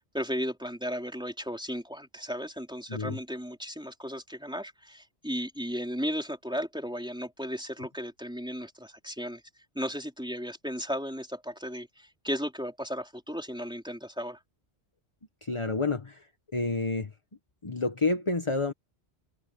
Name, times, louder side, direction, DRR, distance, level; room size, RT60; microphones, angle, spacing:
voice 1, 0.1-9.4 9.7-14.4, equal, 5° right, 3.9 m, -35 dB
voice 2, 2.9-3.2 15.4-16.3 16.5-17.1 17.6-18.7, left 3 dB, 30° left, 1.3 m, -29 dB
omnidirectional pair, 1.1 m